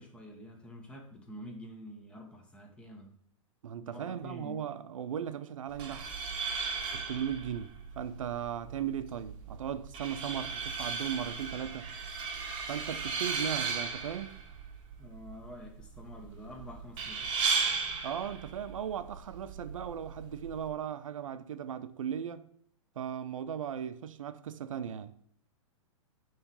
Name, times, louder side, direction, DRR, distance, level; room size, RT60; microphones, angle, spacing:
voice 1, 0.0-3.1 3.8-4.6 15.0-17.8, equal, 5° left, 1.0 m, -48 dB
voice 2, 3.6-6.1 6.9-11.9 12.7-14.4 18.0-22.4 23.0-25.2, right 9 dB, 85° right, 0.6 m, -37 dB
sound 1, 5.7-20.7, right 5 dB, 30° right, 1.1 m, -36 dB
7.0 x 3.2 x 5.3 m
hypercardioid pair, 135°, 17 cm